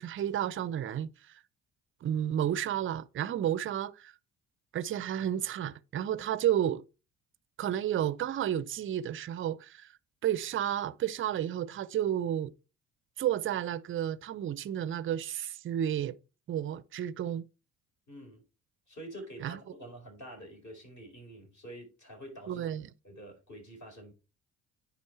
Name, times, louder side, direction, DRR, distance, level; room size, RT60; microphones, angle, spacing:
voice 1, 0.0-1.4 2.0-4.1 4.7-6.8 7.6-9.9 10.2-12.5 13.2-16.2 16.5-17.4 19.4-19.6 22.5-22.9, right 10 dB, 30° right, 0.5 m, -31 dB
voice 2, 18.1-18.4 18.9-22.7 23.0-24.1, right 1 dB, 40° left, 4.3 m, -47 dB
9.6 x 4.2 x 4.3 m
figure-of-eight pair, 45°, 43 cm